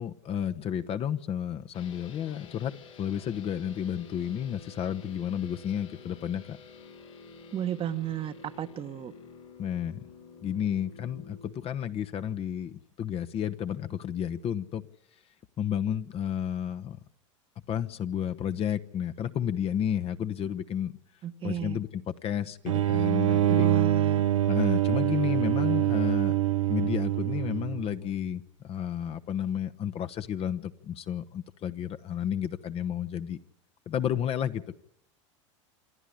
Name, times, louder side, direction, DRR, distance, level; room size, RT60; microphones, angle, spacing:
voice 1, 0.0-2.7 3.0-6.6 9.6-10.0 10.4-14.8 15.6-17.0 17.7-20.9 21.4-23.7 24.5-26.4 26.7-33.4 33.9-34.7, left 9 dB, 40° left, 10 dB, 1.0 m, -31 dB
sound 1, 1.7-11.5, left 4 dB, 85° left, 3.9 m, -50 dB
voice 2, 7.5-9.1 21.2-21.8 23.5-24.3, right 10 dB, 35° right, 10 dB, 1.2 m, -34 dB
sound 2, 22.7-28.0, right 12 dB, 85° right, 1.1 m, -25 dB
27.5 x 11.5 x 10.0 m, 0.73 s
hypercardioid pair, 95°, 16 cm